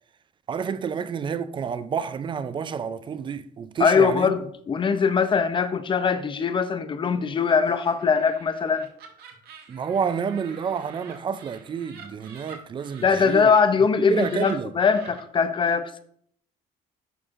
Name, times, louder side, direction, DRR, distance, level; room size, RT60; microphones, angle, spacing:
voice 1, 0.5-4.3 9.7-13.5 14.1-14.7, right 7 dB, 30° right, 0.4 m, -29 dB
voice 2, 3.8-8.9 13.0-16.0, left 5 dB, 30° left, 0.6 m, -21 dB
Laughter, 7.5-13.6 14.0-15.2, right 5 dB, 70° right, 1.2 m, -47 dB
11.0 x 4.3 x 2.5 m
cardioid pair, 110°, 17 cm